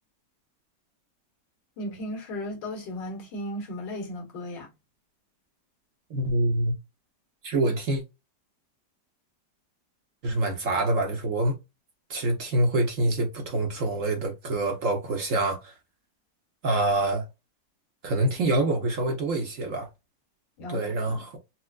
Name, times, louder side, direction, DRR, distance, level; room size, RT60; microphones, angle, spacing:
voice 1, 1.8-4.7 20.6-21.3, left 1 dB, 85° left, 1.9 m, -36 dB
voice 2, 6.1-6.7 7.4-8.0 10.2-11.6 12.1-15.7 16.6-17.2 18.0-19.9 20.7-21.4, right 2 dB, 55° right, 1.0 m, -26 dB
4.3 x 2.1 x 2.3 m
omnidirectional pair, 1.9 m